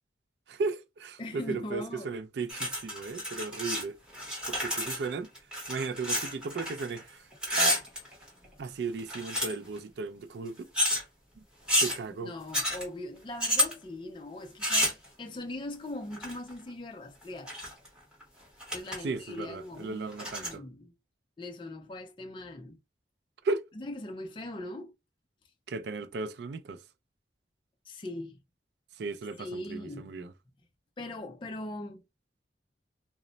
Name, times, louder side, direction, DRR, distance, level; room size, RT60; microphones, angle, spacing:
voice 1, 0.5-4.0 4.5-5.3 5.7-7.3 7.6-7.8 8.6-10.7 11.4-11.5 11.8-12.3 19.0-20.6 23.4-23.6 25.7-26.8 29.0-30.3, right 4 dB, 65° right, 0.4 m, -35 dB
voice 2, 1.2-2.1 12.1-17.5 18.7-20.9 21.4-22.8 23.8-24.9 27.8-28.4 29.4-30.2 31.0-32.0, left 1 dB, 25° left, 0.4 m, -40 dB
sound 1, 2.5-3.8 4.1-7.0 7.3-8.5 9.0-9.8 10.7-11.0 11.7-12.0 12.5-12.8 13.4-13.7 14.6-15.1 16.1-16.5 17.2-17.9 18.2-18.3 18.6-19.0 19.3-19.4 20.1-20.5, equal, 5° right, 0.8 m, -30 dB
2.1 x 2.0 x 3.8 m
head